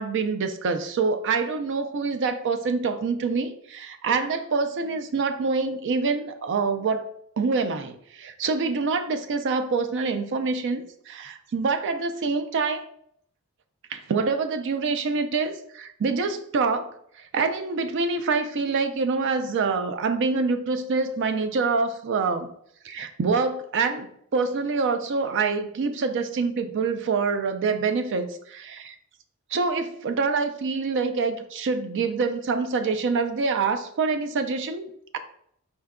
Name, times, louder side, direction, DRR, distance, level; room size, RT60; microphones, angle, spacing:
voice 1, 0.0-7.1 7.4-12.8 13.9-22.5 22.8-29.0 29.5-35.2, right 4 dB, 55° right, 9 dB, 0.4 m, -26 dB
4.3 x 2.2 x 3.6 m, 0.67 s
head